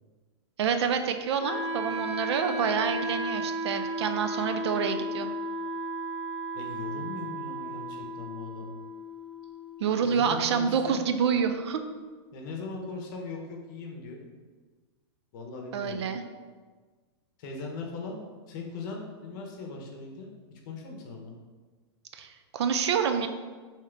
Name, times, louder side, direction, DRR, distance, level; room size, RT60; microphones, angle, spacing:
voice 1, 0.6-5.3 9.8-11.8 15.7-16.2 22.1-23.3, right 7 dB, 75° right, 8 dB, 0.4 m, -27 dB
Wind instrument woodwind instrument, 1.4-11.4, right 1 dB, 35° right, 0.7 m, -35 dB
voice 2, 6.5-8.7 10.0-11.0 12.3-14.2 15.3-16.1 17.4-18.2 18.5-20.3 20.7-21.3, left 3 dB, 45° left, 0 dB, 0.8 m, -39 dB
3.6 x 2.8 x 3.3 m, 1.4 s
supercardioid pair, 155°, 14 cm